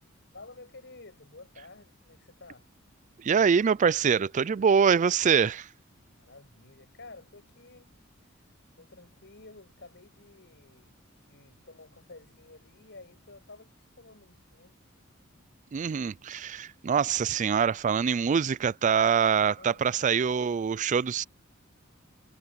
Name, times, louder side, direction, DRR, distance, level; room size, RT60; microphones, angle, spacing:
voice 1, 0.3-2.7 6.2-8.0 8.7-14.8 19.6-19.8, left 3 dB, 60° left, 7.9 m, -51 dB
voice 2, 3.2-5.7 15.7-21.2, right 6 dB, 40° right, 0.4 m, -24 dB
head